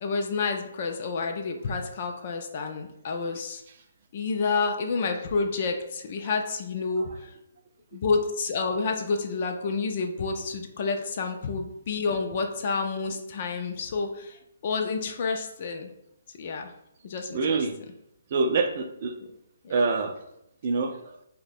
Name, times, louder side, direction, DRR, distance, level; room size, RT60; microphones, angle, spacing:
voice 1, 0.0-3.6 4.1-7.3 7.9-14.4 14.6-15.9 16.4-16.7 17.0-17.6 19.6-19.7, left 4 dB, 40° left, 4 dB, 0.4 m, -29 dB
voice 2, 17.3-17.8 18.3-19.2 19.7-20.2 20.6-21.2, right 4 dB, 40° right, 5 dB, 0.3 m, -26 dB
2.8 x 2.1 x 4.1 m, 0.79 s
hypercardioid pair, 165°, 0 cm